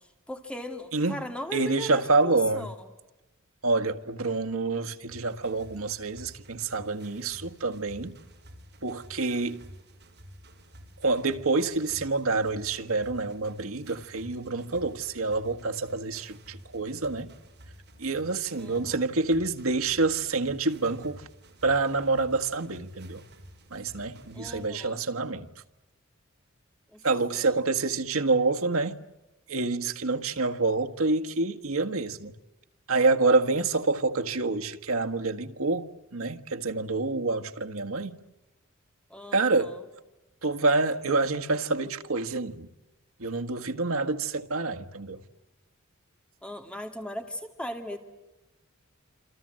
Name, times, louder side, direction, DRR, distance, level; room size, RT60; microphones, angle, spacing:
voice 1, 0.3-2.9 18.6-19.0 24.3-25.0 26.9-27.0 27.3-27.6 39.1-39.8 46.4-48.0, left 1 dB, 5° left, 2.2 m, -38 dB
voice 2, 1.5-2.7 3.6-8.1 8.8-9.6 11.0-17.3 18.0-21.3 21.6-23.2 23.7-25.5 27.0-29.0 29.5-32.3 32.9-35.9 36.1-38.1 39.3-39.8 40.4-42.7 43.2-45.2, right 3 dB, 85° right, 1.6 m, -27 dB
sound 1, 5.1-24.7, equal, 55° right, 5.2 m, -51 dB
28.0 x 27.0 x 7.6 m
head